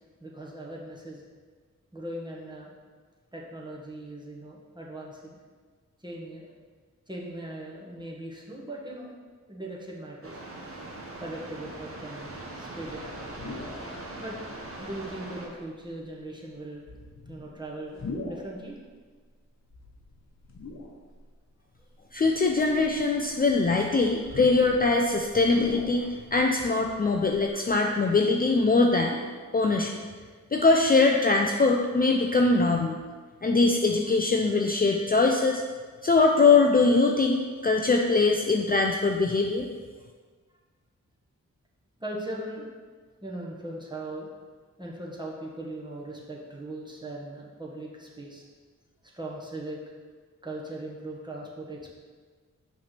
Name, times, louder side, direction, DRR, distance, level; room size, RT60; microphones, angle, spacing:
voice 1, 0.2-1.2 1.9-2.7 3.3-5.4 6.0-6.5 7.1-9.1 9.5-10.4 11.2-13.1 14.2-14.4 14.8-16.8 17.3-18.8 42.0-42.7 43.2-44.3 44.8-48.4 49.1-49.8 50.4-51.9, right 1 dB, 15° right, -3 dB, 1.4 m, -39 dB
sound 1, 10.2-15.5, right 2 dB, 45° right, 1.2 m, -41 dB
sound 2, 13.0-13.9 14.6-14.7 15.7-16.1 16.8-18.6 19.7-21.2 21.8-21.9 22.5-26.4 26.7-26.8 27.0-27.5, left 3 dB, 55° left, 1.0 m, -40 dB
voice 2, 22.1-29.2 29.5-29.9 30.5-33.0 33.4-35.6 36.0-39.7, left 3 dB, 30° left, 2 dB, 0.4 m, -22 dB
5.8 x 3.3 x 5.8 m, 1.5 s
cardioid pair, 65°, 31 cm